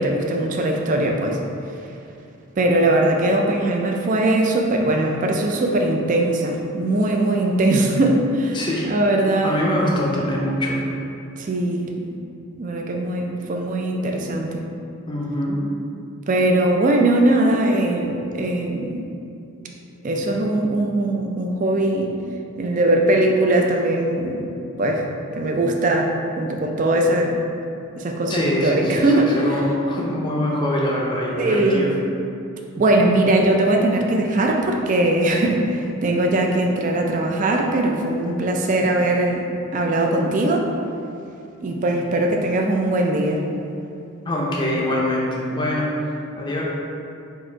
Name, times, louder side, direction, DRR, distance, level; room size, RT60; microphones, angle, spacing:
voice 1, 0.0-1.4 2.6-9.7 11.4-12.1 12.6-14.6 16.3-19.0 20.0-22.2 22.6-24.5 24.8-25.0 25.4-27.4 28.0-29.6 31.4-31.9 32.8-39.4 39.7-40.7 41.6-43.4, right 1 dB, 35° right, 1 dB, 0.4 m, -20 dB
voice 2, 8.5-8.9 9.4-10.8 15.1-15.6 28.3-31.9 44.3-46.6, left 1 dB, 20° left, -3 dB, 0.5 m, -23 dB
4.5 x 2.5 x 4.4 m, 2.6 s
head